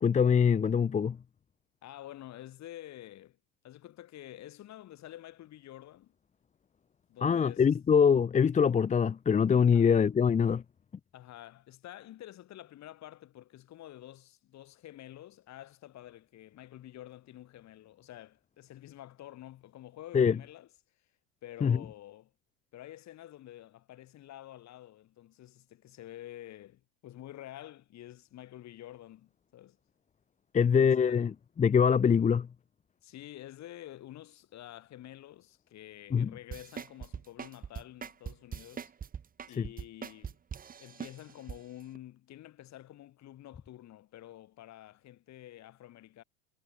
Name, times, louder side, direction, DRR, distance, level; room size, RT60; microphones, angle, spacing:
voice 1, 0.0-1.2 7.2-10.6 20.1-20.4 21.6-21.8 30.5-31.3 31.6-32.5 36.1-36.3 39.6-39.7, left 7 dB, 20° left, 0.9 m, -24 dB
voice 2, 1.8-3.4 3.6-6.1 7.1-7.8 9.7-9.9 11.1-20.7 21.4-22.3 22.7-29.8 30.6-31.3 33.0-38.9 39.5-40.4 40.8-46.2, left 13 dB, 45° left, 5.8 m, -49 dB
sound 1, 36.5-41.6 41.9-42.0, right 7 dB, 20° right, 1.4 m, -41 dB
hypercardioid pair, 95°, 39 cm